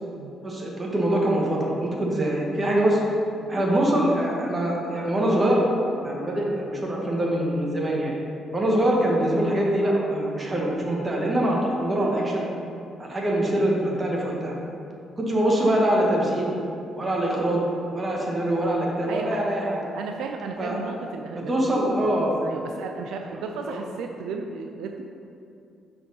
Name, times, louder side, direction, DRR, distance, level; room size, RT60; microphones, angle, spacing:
voice 1, 0.4-3.0 3.5-5.7 6.0-8.1 8.5-12.5 13.0-14.5 15.2-16.5 16.9-17.6 17.9-19.8 20.6-20.8 21.3-22.3 23.6-23.7, right 1 dB, 25° right, -2 dB, 1.4 m, -24 dB
voice 2, 19.1-19.4 19.9-25.0, right 4 dB, 85° right, 3 dB, 0.4 m, -35 dB
5.5 x 4.4 x 5.6 m, 2.6 s
cardioid pair, 90°, 0 cm